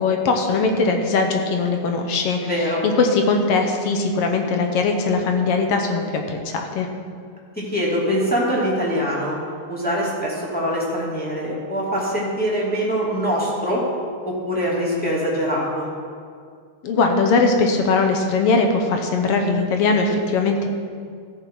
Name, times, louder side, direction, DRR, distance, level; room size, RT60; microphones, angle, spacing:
voice 1, 0.0-2.4 2.8-6.9 16.8-20.7, left 4 dB, 70° left, 4 dB, 1.5 m, -20 dB
voice 2, 2.4-2.8 7.6-9.4 9.7-13.8 14.2-15.9, equal, 5° left, -7 dB, 1.9 m, -23 dB
15.0 x 6.9 x 4.7 m, 2.1 s
omnidirectional pair, 3.5 m